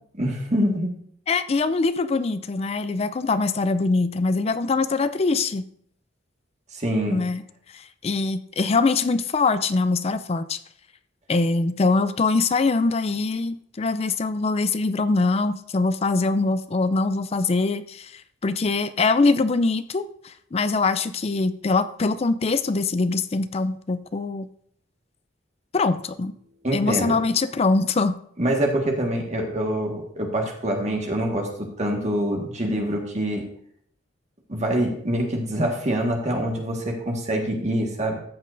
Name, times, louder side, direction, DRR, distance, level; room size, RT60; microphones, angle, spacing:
voice 1, 0.1-0.9 6.7-7.2 26.6-27.2 28.4-33.4 34.5-38.2, right 1 dB, 40° right, 1 dB, 1.6 m, -25 dB
voice 2, 1.3-5.6 7.1-7.4 8.0-10.6 11.3-18.1 18.4-24.5 25.7-26.3 26.7-28.2, left 3 dB, 35° left, 12 dB, 0.4 m, -23 dB
13.5 x 7.5 x 2.6 m, 0.65 s
head